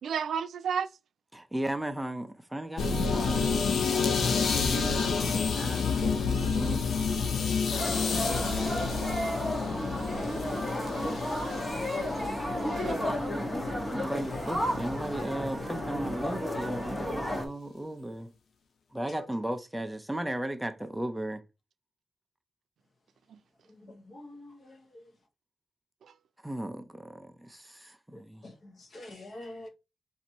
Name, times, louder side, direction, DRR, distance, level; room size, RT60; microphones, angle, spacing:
voice 1, 0.0-0.9 8.1-8.4 9.8-9.9 10.2-10.5 11.2-11.6 11.9-12.3 12.7-13.0, right 7 dB, 90° right, 0.4 m, -35 dB
voice 2, 1.3-6.8 13.1-18.3 18.9-21.4 26.4-28.4, right 1 dB, 5° right, 0.4 m, -36 dB
sound 1, 2.8-13.8 14.1-14.5, left 5 dB, 65° left, 0.5 m, -29 dB
sound 2, 7.7-17.5, left 1 dB, 15° left, 1.0 m, -32 dB
voice 3, 23.8-25.0 28.1-29.7, left 1 dB, 40° left, 1.0 m, -47 dB
4.1 x 2.6 x 4.3 m
wide cardioid pair, 180°, 0 cm